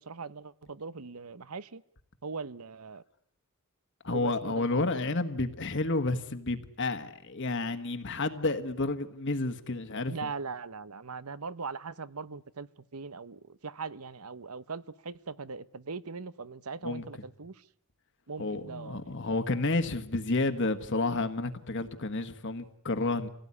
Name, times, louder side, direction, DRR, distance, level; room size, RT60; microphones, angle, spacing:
voice 1, 0.0-1.8 2.2-3.0 4.1-4.9 10.1-17.6 18.3-19.1, right 4 dB, 80° right, 1.0 m, -40 dB
voice 2, 4.0-10.3 16.8-17.0 18.4-23.3, left 2 dB, 55° left, 1.5 m, -30 dB
26.5 x 17.0 x 9.8 m
head